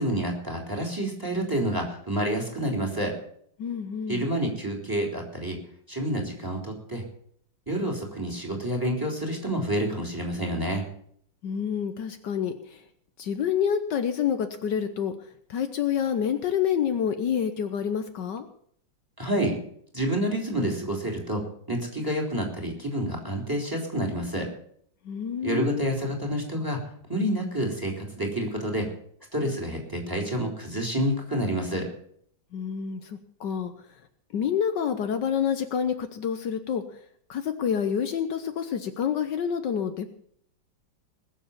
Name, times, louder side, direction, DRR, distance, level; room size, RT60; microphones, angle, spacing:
voice 1, 0.0-3.1 4.1-5.6 5.9-7.0 7.7-10.8 19.2-19.6 19.9-21.4 21.7-24.5 25.4-26.8 27.1-28.9 29.3-31.9, right 1 dB, 10° right, 1 dB, 3.4 m, -28 dB
voice 2, 3.6-4.3 11.4-12.8 13.2-15.1 15.5-18.5 25.0-25.9 32.5-34.0 34.3-36.8 37.3-40.1, left 8 dB, 70° left, 8 dB, 1.5 m, -28 dB
20.5 x 7.3 x 7.1 m, 0.64 s
omnidirectional pair, 2.1 m